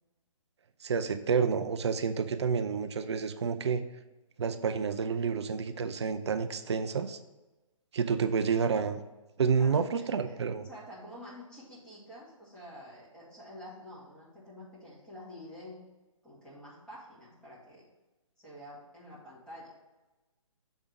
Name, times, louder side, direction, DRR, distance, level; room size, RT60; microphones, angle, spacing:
voice 1, 0.8-3.8 4.4-7.2 7.9-9.0 9.4-10.7, right 6 dB, 55° right, 9 dB, 0.5 m, -29 dB
voice 2, 9.6-15.8 16.2-17.9 18.4-19.7, left 1 dB, 5° left, -9 dB, 2.2 m, -48 dB
6.4 x 3.5 x 6.1 m, 1.1 s
figure-of-eight pair, 135°, 17 cm